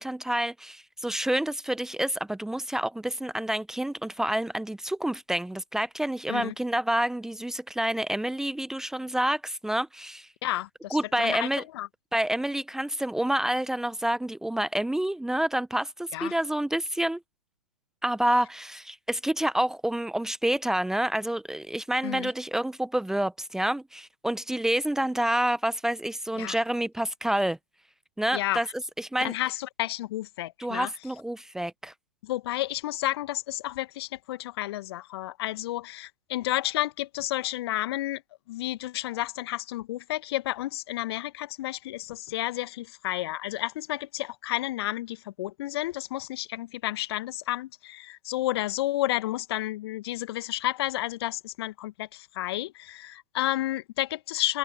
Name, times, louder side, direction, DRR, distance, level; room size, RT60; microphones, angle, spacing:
voice 1, 0.0-10.3 10.9-11.6 12.1-17.2 18.0-27.6 28.2-29.3 30.6-31.9, right 1 dB, 5° right, 1.1 m, -28 dB
voice 2, 10.4-11.5 11.7-11.9 16.1-16.3 22.0-22.3 26.4-26.6 28.3-28.6 29.2-30.9 32.2-38.2 38.5-54.6, left 15 dB, 45° left, 1.5 m, -31 dB
figure-of-eight pair, 110°, 18 cm